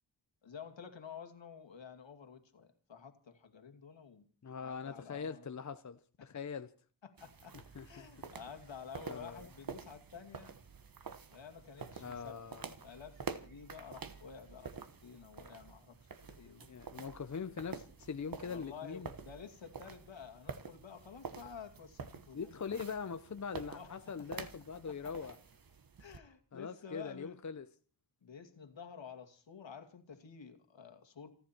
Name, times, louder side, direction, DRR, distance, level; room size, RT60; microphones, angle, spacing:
voice 1, 0.4-4.3 4.6-5.5 6.2-6.3 7.0-7.6 7.8-10.6 11.3-12.4 12.8-14.7 15.0-16.7 18.4-22.9 23.7-24.4 24.9-25.1 26.0-27.4 28.2-31.3, left 6 dB, 75° left, 2.5 m, -51 dB
voice 2, 4.4-6.7 7.7-8.1 9.1-9.5 12.0-12.7 16.7-19.1 22.3-25.4 26.5-27.6, left 6 dB, 40° left, 0.7 m, -42 dB
sound 1, 7.2-26.2, right 5 dB, 50° right, 1.3 m, -49 dB
29.0 x 10.5 x 4.4 m
wide cardioid pair, 125°, 45 cm